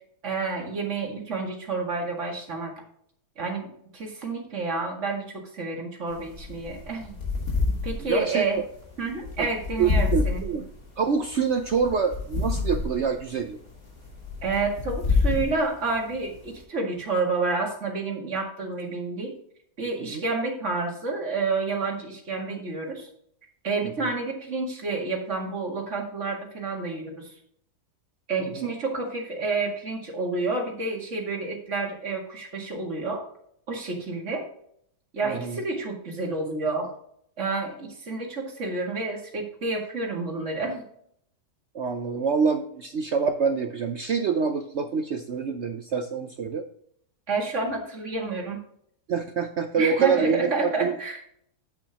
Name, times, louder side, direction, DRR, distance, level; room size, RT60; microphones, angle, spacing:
voice 1, 0.2-2.7 3.4-7.1 7.8-8.6 9.0-10.4 14.4-19.3 19.8-23.1 23.6-27.3 28.3-33.2 33.7-34.4 35.1-36.9 37.4-40.8 47.3-48.6 49.8-51.2, right 3 dB, 45° right, 1 dB, 2.3 m, -29 dB
sound 1, 6.1-16.6, left 4 dB, 55° left, 3.3 m, -29 dB
voice 2, 8.1-8.6 9.4-9.5 9.8-10.7 11.0-13.6 20.1-20.2 28.4-28.7 35.2-35.6 41.7-46.7 49.1-51.0, right 5 dB, 65° right, 7 dB, 0.6 m, -26 dB
8.5 x 8.5 x 2.9 m, 0.68 s
omnidirectional pair, 1.8 m